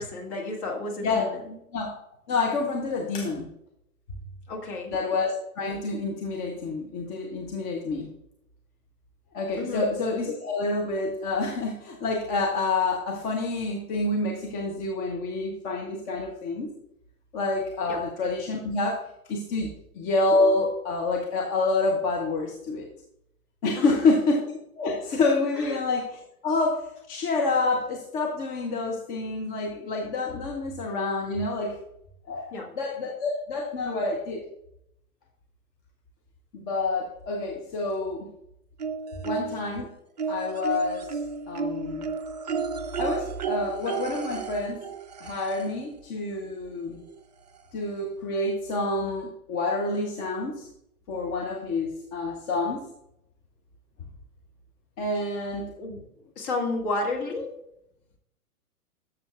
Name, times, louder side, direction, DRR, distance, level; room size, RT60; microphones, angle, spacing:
voice 1, 0.0-1.5 4.5-4.9 9.6-9.9 17.9-18.0 23.8-24.0 25.5-25.8 32.5-32.7 55.8-56.0 56.4-57.5, left 2 dB, 35° left, 1 dB, 1.9 m, -32 dB
voice 2, 1.0-1.3 1.7-1.9 2.3-3.5 4.9-8.1 9.3-16.7 17.3-22.9 23.6-31.8 32.3-34.4 36.5-38.3 39.2-39.9 40.3-41.1 41.5-42.1 43.0-44.8 45.2-47.0 47.7-50.7 51.1-52.9 55.0-55.7, left 3 dB, 20° left, 1 dB, 0.6 m, -28 dB
sound 1, 38.8-39.7 40.2-45.9 47.1-47.2 47.5-47.6, right 6 dB, 30° right, 0.4 m, -33 dB
12.0 x 6.8 x 2.3 m, 0.79 s
figure-of-eight pair, 110°, 45 cm